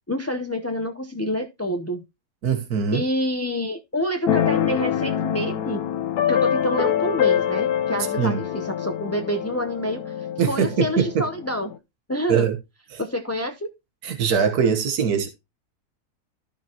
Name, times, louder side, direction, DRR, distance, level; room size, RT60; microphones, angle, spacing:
voice 1, 0.1-2.0 2.9-5.8 6.3-11.7 12.1-12.5 13.0-13.7, equal, 20° left, 0.4 m, -27 dB
voice 2, 2.4-3.0 8.2-8.4 10.4-11.2 12.3-12.5 12.9-13.0 14.0-15.3, right 7 dB, 80° right, 1.7 m, -22 dB
Keyboard (musical), 4.3-11.8, left 9 dB, 85° left, 1.3 m, -25 dB
13.5 x 5.8 x 2.9 m
omnidirectional pair, 1.6 m